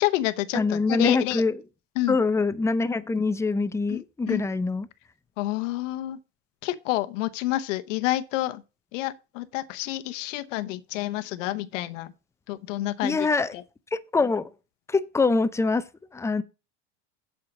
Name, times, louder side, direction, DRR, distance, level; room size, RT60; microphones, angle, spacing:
voice 1, 0.0-1.4 2.0-2.2 3.9-4.4 5.4-6.2 6.6-8.6 8.9-12.1 12.5-13.3 13.5-13.6, left 16 dB, 80° left, 1.0 m, -28 dB
voice 2, 0.5-1.6 2.1-4.9 13.0-13.5 13.9-14.5 14.9-15.9 16.1-16.4, left 3 dB, 10° left, 0.5 m, -24 dB
7.9 x 5.6 x 6.0 m
supercardioid pair, 105°, 37 cm